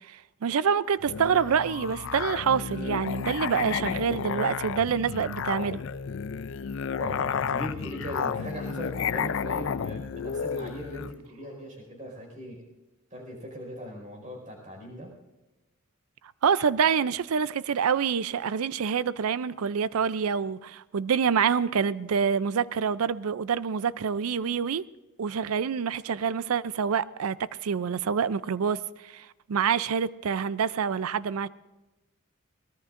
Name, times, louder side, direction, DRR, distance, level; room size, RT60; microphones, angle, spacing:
voice 1, 0.1-5.8 16.4-24.8 25.2-31.5, right 7 dB, 80° right, 0.4 m, -27 dB
Musical instrument, 1.0-11.2, left 6 dB, 60° left, 0.4 m, -32 dB
voice 2, 7.0-12.6 13.1-15.1, equal, 35° right, 4.9 m, -39 dB
23.5 x 18.5 x 2.5 m
head